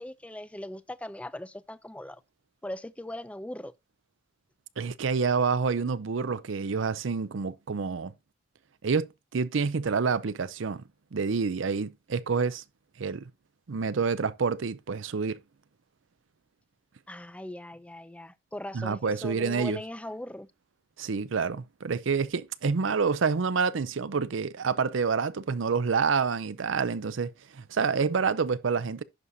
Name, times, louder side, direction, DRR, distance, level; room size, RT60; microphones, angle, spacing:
voice 1, 0.0-2.2 2.6-3.7 17.1-20.5, left 1 dB, 5° left, 0.4 m, -39 dB
voice 2, 4.8-8.1 8.8-10.8 11.1-12.6 13.0-13.3 13.7-15.4 18.7-19.8 21.0-29.0, right 5 dB, 75° right, 0.5 m, -28 dB
11.0 x 6.5 x 2.7 m
head